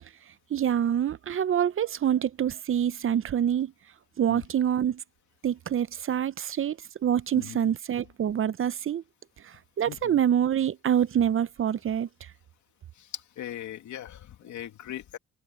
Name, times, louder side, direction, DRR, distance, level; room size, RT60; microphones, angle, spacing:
voice 1, 0.5-3.7 4.2-5.0 5.4-9.0 9.4-12.3, right 9 dB, 45° right, 0.7 m, -26 dB
voice 2, 9.9-10.2 13.0-15.2, left 11 dB, 75° left, 2.5 m, -39 dB
cardioid pair, 90°, 30 cm